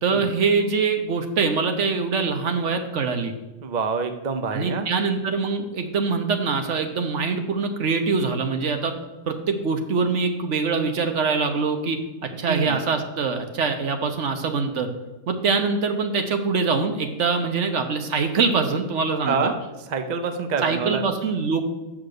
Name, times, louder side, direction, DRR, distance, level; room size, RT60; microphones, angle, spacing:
voice 1, 0.0-3.3 4.5-8.9 9.3-12.0 12.4-14.9 15.3-19.5 20.6-21.6, right 4 dB, 65° right, 6 dB, 1.2 m, -24 dB
voice 2, 3.6-4.9 12.5-12.8 19.2-19.5 19.9-21.0, right 5 dB, 45° right, 6 dB, 0.6 m, -26 dB
6.6 x 6.0 x 6.6 m, 1.1 s
omnidirectional pair, 1.4 m